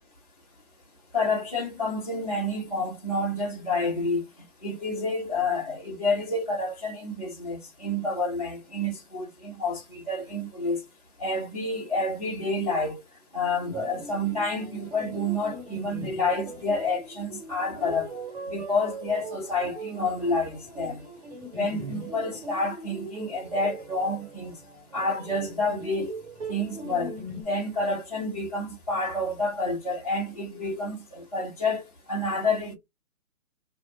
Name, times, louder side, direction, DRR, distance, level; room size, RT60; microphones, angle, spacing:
voice 1, 1.1-4.2 4.6-10.8 11.2-13.0 13.3-18.1 18.5-21.0 21.5-24.6 24.9-26.2 26.5-27.1 27.5-31.8 32.1-32.7, left 2 dB, 30° left, 0.4 m, -29 dB
sound 1, 13.6-27.4, right 1 dB, 35° right, 1.5 m, -40 dB
2.4 x 2.1 x 2.9 m
hypercardioid pair, 160°, 43 cm